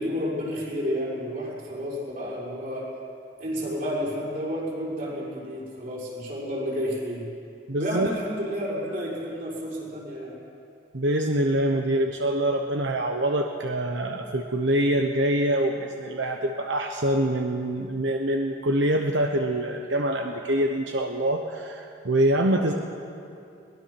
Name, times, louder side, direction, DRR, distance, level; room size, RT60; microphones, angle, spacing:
voice 1, 0.0-2.9 3.4-7.3 7.8-10.4, equal, 50° right, -5 dB, 5.9 m, -31 dB
voice 2, 7.7-8.1 10.9-22.7, right 1 dB, 85° right, 3 dB, 1.1 m, -25 dB
22.0 x 19.5 x 6.1 m, 2.6 s
head